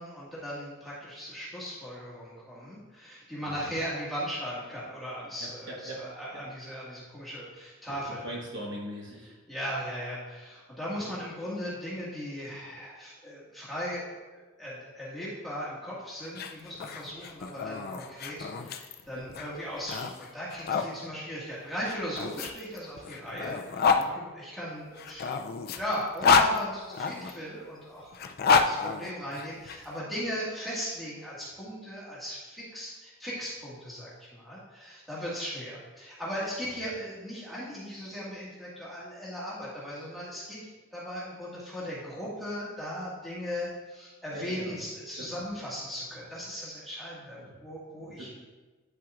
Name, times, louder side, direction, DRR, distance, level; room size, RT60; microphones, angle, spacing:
voice 1, 0.0-8.3 9.5-25.3 25.7-40.6 40.9-48.3, equal, ahead, -9 dB, 1.8 m, -38 dB
voice 2, 3.4-3.8 5.4-6.0 6.3-6.4 7.9-8.0 8.2-9.3 19.1-19.2 21.0-21.1 24.0-24.1 44.3-44.8 45.2-45.3 47.4-47.6 48.0-48.3, right 1 dB, 55° right, -3 dB, 1.3 m, -41 dB
sound 1, 16.2-20.9 21.9-24.1 25.0-27.3 28.1-29.8, left 5 dB, 45° left, 0.4 m, -28 dB
8.9 x 5.8 x 2.5 m, 1.3 s
head